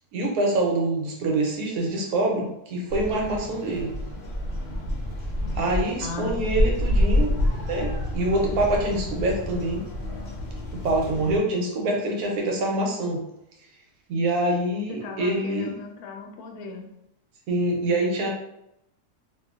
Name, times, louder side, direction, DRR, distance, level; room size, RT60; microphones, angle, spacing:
voice 1, 0.1-3.9 5.5-7.4 7.7-9.8 10.7-13.2 14.1-15.7 17.5-18.3, right 1 dB, 85° right, 0 dB, 1.2 m, -25 dB
sound 1, 2.9-11.4, left 1 dB, 55° left, 0.8 m, -28 dB
voice 2, 6.0-6.5 14.9-16.9, left 5 dB, 80° left, 2 dB, 1.1 m, -37 dB
2.9 x 2.5 x 2.3 m, 0.81 s
omnidirectional pair, 1.6 m